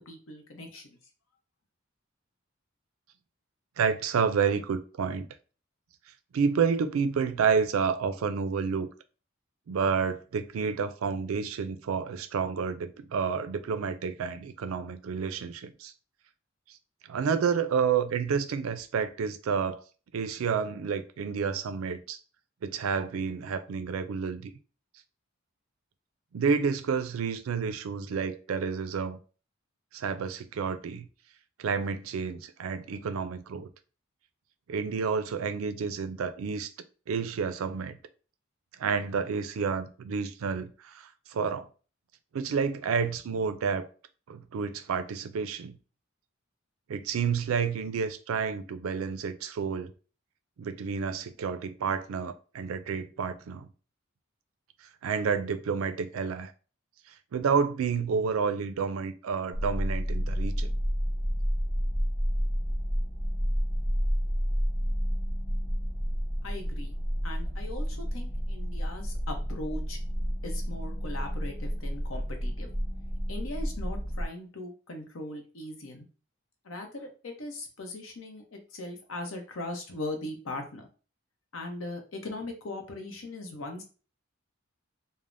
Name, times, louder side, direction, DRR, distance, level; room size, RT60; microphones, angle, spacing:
voice 1, 0.1-1.0 66.4-66.9 67.2-70.0 70.4-72.7 73.3-76.1 76.6-80.9 81.5-83.8, left 2 dB, 70° left, 0.7 m, -39 dB
voice 2, 3.8-5.3 6.3-8.9 9.7-15.9 17.1-19.8 20.1-22.2 22.6-24.5 26.3-29.2 29.9-31.1 31.6-33.7 34.7-36.7 37.1-38.0 38.8-41.7 42.3-43.9 44.3-45.8 46.9-49.9 50.6-53.7 55.0-56.5 57.3-60.7, right 6 dB, 90° right, 0.4 m, -30 dB
sound 1, 59.5-74.3, equal, 30° left, 0.8 m, -30 dB
3.2 x 2.0 x 2.5 m
head